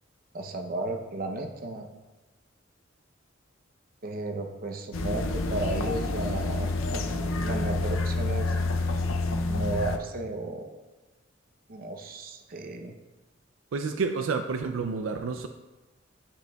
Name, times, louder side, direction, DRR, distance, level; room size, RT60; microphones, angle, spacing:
voice 1, 0.3-1.9 4.0-7.0 7.4-8.6 9.5-10.7 11.7-12.9, right 2 dB, 45° right, 4 dB, 0.7 m, -34 dB
sound 1, 4.9-10.0, left 2 dB, 85° left, 0.5 m, -28 dB
voice 2, 13.7-15.5, right 4 dB, 80° right, 7 dB, 0.4 m, -29 dB
10.5 x 5.0 x 2.3 m, 1.2 s
head